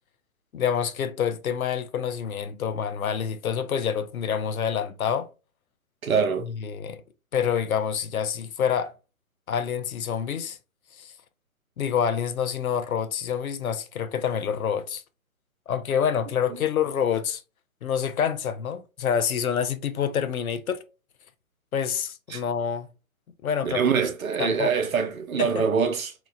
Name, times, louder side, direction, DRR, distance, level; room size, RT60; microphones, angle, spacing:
voice 1, 0.5-5.3 6.4-7.0 7.3-8.9 9.5-10.6 10.9-11.1 11.8-15.0 15.7-17.4 17.8-20.8 21.7-22.9 23.4-23.8 24.4-24.7 25.4-25.6, left 8 dB, 80° left, 0.6 m, -27 dB
voice 2, 6.0-6.5 22.3-22.4 23.6-26.1, right 6 dB, 75° right, 0.8 m, -24 dB
2.9 x 2.2 x 2.4 m
figure-of-eight pair, 135°, 42 cm